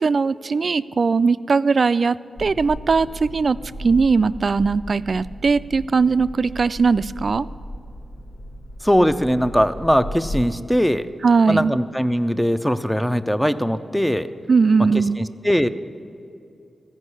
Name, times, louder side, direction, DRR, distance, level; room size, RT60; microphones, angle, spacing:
voice 1, 0.0-7.5 11.2-11.7 14.5-15.2, right 4 dB, 60° right, 16 dB, 0.3 m, -19 dB
sound 1, 2.4-10.4, equal, 70° left, 1.0 m, -36 dB
voice 2, 8.8-11.1 11.5-14.3 15.2-15.7, equal, 5° left, 11 dB, 0.6 m, -20 dB
15.0 x 5.4 x 9.7 m, 2.5 s
cardioid pair, 45°, 0 cm